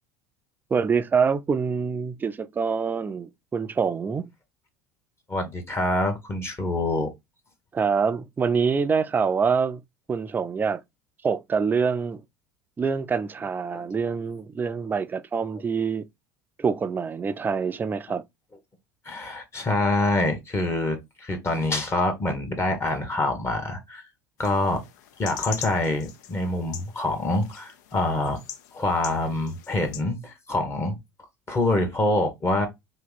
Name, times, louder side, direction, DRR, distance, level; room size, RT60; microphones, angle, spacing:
voice 1, 0.7-4.3 7.7-9.8 10.1-10.8 11.2-12.2 12.8-16.0 16.6-18.2, right 5 dB, 20° right, 0.4 m, -25 dB
voice 2, 5.3-7.1 13.7-13.9 19.0-24.1 24.4-24.8 25.2-28.4 28.7-30.9 31.5-32.7, left 2 dB, 25° left, 1.1 m, -26 dB
sound 1, 24.4-30.0, left 9 dB, 70° left, 0.5 m, -41 dB
2.9 x 2.7 x 3.8 m
hypercardioid pair, 75°, 10 cm